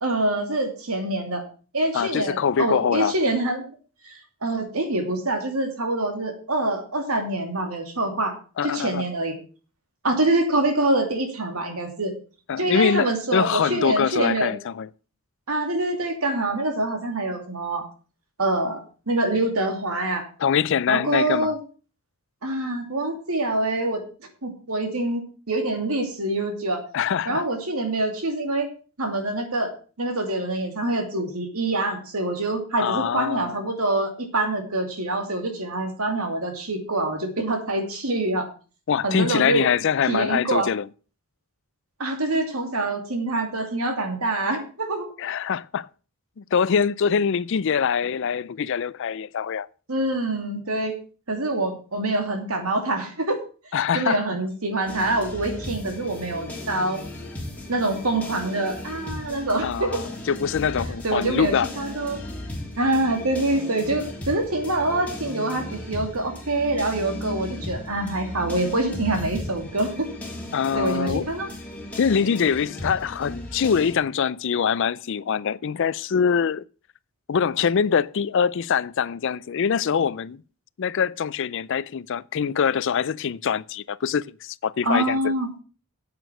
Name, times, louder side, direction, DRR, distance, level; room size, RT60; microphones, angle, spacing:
voice 1, 0.0-1.4 1.7-3.6 4.0-4.1 4.4-8.3 8.6-9.4 10.0-12.1 12.6-14.5 15.5-17.9 18.4-20.3 20.9-21.6 22.4-24.0 24.4-25.2 25.5-26.8 27.3-28.7 29.0-29.7 30.0-38.5 39.0-39.7 40.1-40.7 42.0-45.1 49.9-50.9 51.3-53.4 53.9-57.0 57.7-60.0 61.0-62.2 62.8-70.1 70.7-71.5 84.8-85.5, right 2 dB, 80° right, 2.7 m, -25 dB
voice 2, 1.9-3.1 8.6-9.1 12.5-14.9 20.4-21.5 26.9-27.4 32.8-33.6 38.9-40.9 45.2-45.9 46.4-49.7 53.7-54.2 59.6-61.7 70.5-71.3 72.0-76.6 77.3-80.4 80.8-85.3, left 7 dB, 55° left, 0.4 m, -24 dB
sound 1, 54.9-73.9, left 1 dB, 5° left, 2.7 m, -36 dB
9.2 x 8.3 x 6.1 m
head